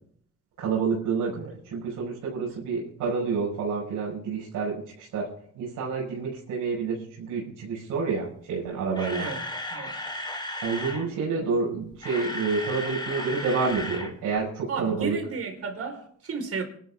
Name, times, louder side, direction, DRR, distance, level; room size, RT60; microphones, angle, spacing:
voice 1, 0.6-9.3 10.6-15.2, right 5 dB, 85° right, 5.6 m, -29 dB
Camera, 8.7-11.1 11.8-14.1 14.4-14.5 15.0-15.1, left 1 dB, 15° left, 4.2 m, -35 dB
voice 2, 14.7-16.6, right 5 dB, 50° right, 4.8 m, -33 dB
25.0 x 12.5 x 3.7 m
cardioid pair, 90°, 30 cm